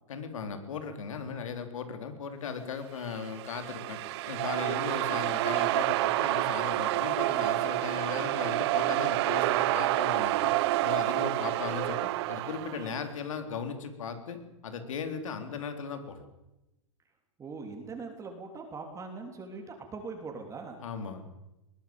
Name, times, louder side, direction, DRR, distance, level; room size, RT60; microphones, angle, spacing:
voice 1, 0.1-10.5 10.8-16.2 20.8-21.3, left 6 dB, 80° left, 7 dB, 3.7 m, -37 dB
sound 1, 3.1-13.0, right 18 dB, 55° right, 0.8 m, -28 dB
voice 2, 17.4-20.8, right 4 dB, 20° right, 3 dB, 3.4 m, -41 dB
21.0 x 17.0 x 8.9 m, 0.96 s
hypercardioid pair, 130°, 17 cm